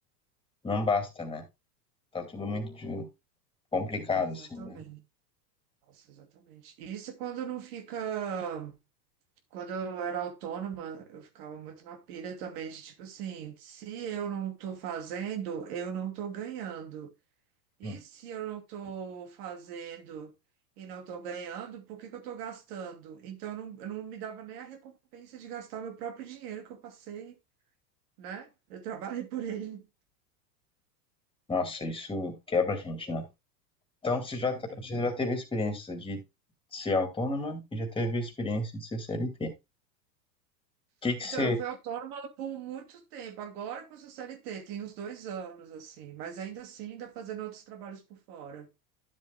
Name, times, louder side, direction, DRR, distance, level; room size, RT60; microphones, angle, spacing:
voice 1, 0.6-1.4 2.1-3.1 3.7-4.8 17.8-18.0 31.5-33.3 34.0-36.2 36.7-39.5 41.0-41.6, left 3 dB, 10° left, 2.5 m, -31 dB
voice 2, 4.4-5.0 5.9-8.8 9.5-17.1 17.8-20.3 20.8-27.4 28.2-29.8 34.4-34.8 41.2-48.7, right 8 dB, 65° right, 2.8 m, -39 dB
12.5 x 7.6 x 2.3 m
supercardioid pair, 125°, 49 cm